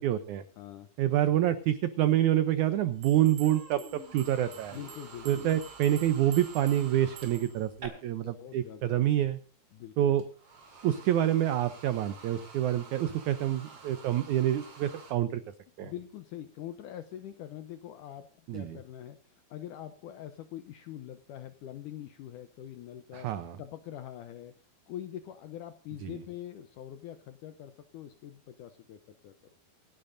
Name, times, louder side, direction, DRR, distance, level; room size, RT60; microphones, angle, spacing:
voice 1, 0.0-0.4 1.0-4.8 5.3-9.4 10.0-10.2 10.8-15.4 15.8-15.9 18.5-18.8 23.1-23.6 26.0-26.2, right 12 dB, 85° right, 12 dB, 1.7 m, -27 dB
voice 2, 0.6-0.9 4.7-5.5 8.2-9.0 9.7-10.1 15.8-23.3 23.6-29.4, left 11 dB, 75° left, 10 dB, 1.9 m, -44 dB
sound 1, 1.1-1.3 3.7-7.7 10.2-15.1, right 4 dB, 40° right, 3.7 m, -51 dB
Human voice, 2.8-3.0 3.4-7.9, right 2 dB, 15° right, 3.7 m, -50 dB
sound 2, 3.0-7.7, right 11 dB, 60° right, 2.7 m, -50 dB
27.5 x 10.5 x 2.6 m, 0.37 s
omnidirectional pair, 4.4 m